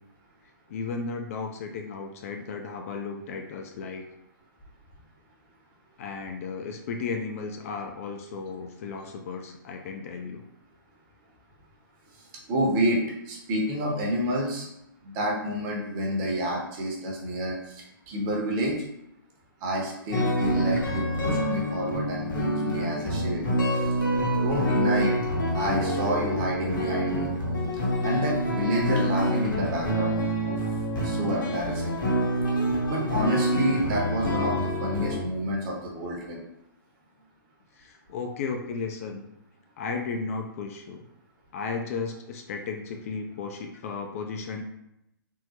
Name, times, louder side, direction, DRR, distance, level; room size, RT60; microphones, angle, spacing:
voice 1, 0.7-4.1 6.0-10.4 37.8-39.2 39.8-41.0 41.5-44.6, left 4 dB, 40° left, 4 dB, 0.3 m, -34 dB
voice 2, 12.5-13.0 13.3-14.7 15.0-18.7 19.6-23.5 24.4-25.2 25.5-27.3 28.0-30.6 31.0-32.0 32.9-36.4, equal, 30° right, -2 dB, 0.8 m, -29 dB
sound 1, 20.1-35.2, equal, 60° left, 1.0 m, -26 dB
3.6 x 2.0 x 2.8 m, 0.83 s
figure-of-eight pair, 120°, 12 cm